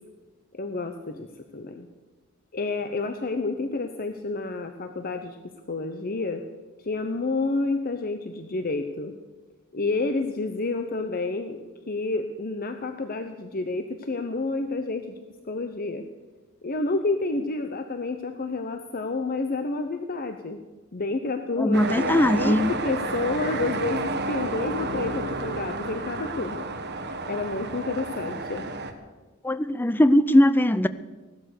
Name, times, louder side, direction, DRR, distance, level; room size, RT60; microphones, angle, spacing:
voice 1, 0.5-1.3 1.5-1.9 2.5-5.4 5.7-6.4 6.8-9.1 9.7-11.6 11.9-15.2 15.4-16.1 16.6-20.6 20.9-26.7 27.3-28.7, left 3 dB, 45° left, 7 dB, 0.9 m, -29 dB
voice 2, 21.6-22.7 29.4-30.9, left 1 dB, 10° left, 13 dB, 0.4 m, -20 dB
sound 1, 21.7-28.9, right 3 dB, 50° right, 1.6 m, -31 dB
17.0 x 12.0 x 6.7 m, 1.3 s
head